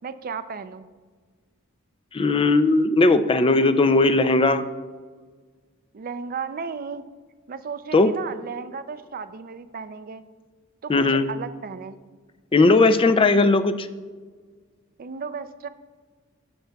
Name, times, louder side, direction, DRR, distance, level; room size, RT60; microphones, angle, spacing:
voice 1, 0.0-0.9 5.9-7.1 7.5-10.3 10.8-12.0 15.0-15.7, right 5 dB, 45° right, 12 dB, 0.4 m, -34 dB
voice 2, 2.1-4.7 7.9-8.1 10.9-11.3 12.5-13.9, left 3 dB, 25° left, 11 dB, 0.4 m, -18 dB
15.5 x 6.8 x 2.3 m, 1.5 s
head